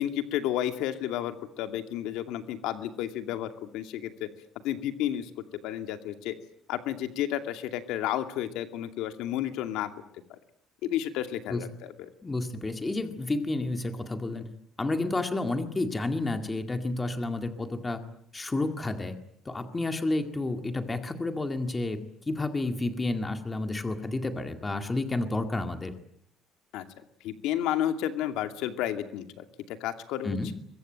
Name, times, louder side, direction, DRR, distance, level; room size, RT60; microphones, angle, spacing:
voice 1, 0.0-4.3 4.6-5.3 5.6-6.3 6.7-9.9 10.8-12.1 26.7-26.9 27.2-30.5, left 11 dB, 80° left, 7 dB, 2.5 m, -31 dB
voice 2, 12.2-14.5 14.8-18.0 18.3-19.2 19.5-22.0 22.3-25.9 30.2-30.5, left 2 dB, 15° left, 7 dB, 2.1 m, -30 dB
24.0 x 23.0 x 9.1 m, 0.71 s
cardioid pair, 175°, 0 cm